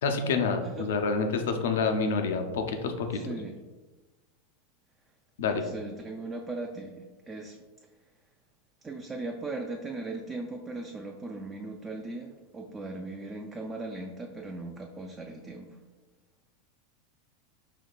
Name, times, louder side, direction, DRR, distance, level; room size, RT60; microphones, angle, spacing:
voice 1, 0.0-3.2 5.4-5.6, left 4 dB, 65° left, 5 dB, 0.5 m, -28 dB
voice 2, 3.1-3.6 5.4-7.6 8.8-15.8, right 2 dB, 20° right, 2 dB, 0.4 m, -38 dB
5.1 x 2.8 x 2.4 m, 1.2 s
figure-of-eight pair, 85°, 0 cm